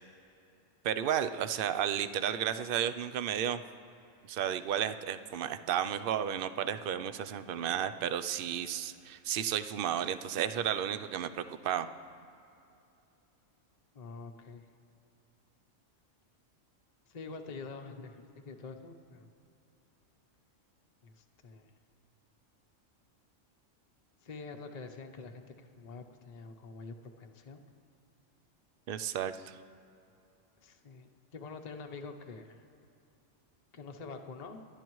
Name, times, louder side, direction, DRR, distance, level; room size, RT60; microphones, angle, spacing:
voice 1, 0.8-3.6 4.2-11.9 28.9-29.6, right 9 dB, 60° right, 11 dB, 0.6 m, -33 dB
voice 2, 13.9-14.7 17.1-19.3 21.0-21.7 24.2-27.6 30.6-32.7 33.7-34.6, left 4 dB, 35° left, 4 dB, 0.8 m, -46 dB
28.5 x 11.5 x 3.1 m, 2.7 s
omnidirectional pair, 1.4 m